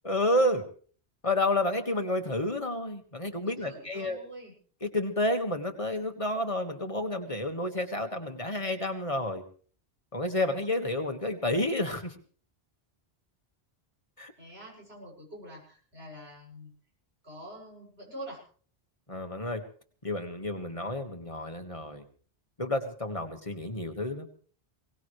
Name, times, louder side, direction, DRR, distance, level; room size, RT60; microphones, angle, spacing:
voice 1, 0.0-0.6 1.2-4.2 4.8-9.4 10.1-12.1 14.2-14.3 19.1-19.6 20.0-22.0 22.6-24.3, left 1 dB, 30° left, 5 dB, 1.9 m, -30 dB
voice 2, 3.4-4.5 14.4-16.7 17.2-18.4, equal, 75° right, -1 dB, 7.7 m, -45 dB
22.5 x 18.5 x 3.3 m, 0.43 s
omnidirectional pair, 1.1 m